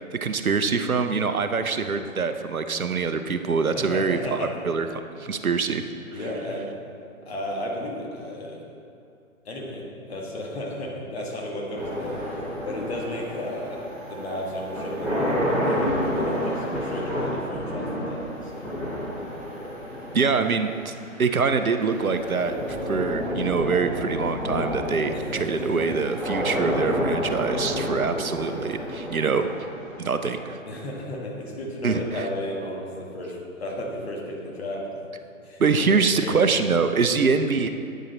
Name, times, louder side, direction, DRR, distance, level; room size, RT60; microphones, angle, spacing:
voice 1, 0.1-4.9 5.2-5.8 20.1-20.9 21.2-30.6 31.8-32.2 35.6-37.7, right 5 dB, 85° right, 9 dB, 0.6 m, -24 dB
voice 2, 3.7-4.5 6.1-6.7 7.2-8.6 9.4-18.7 19.8-20.0 25.1-26.0 30.7-35.0 35.4-36.4, left 1 dB, 50° left, -1 dB, 1.6 m, -34 dB
sound 1, 11.7-30.8, equal, 5° left, 1.4 m, -30 dB
9.1 x 6.4 x 4.0 m, 2.6 s
figure-of-eight pair, 135°, 41 cm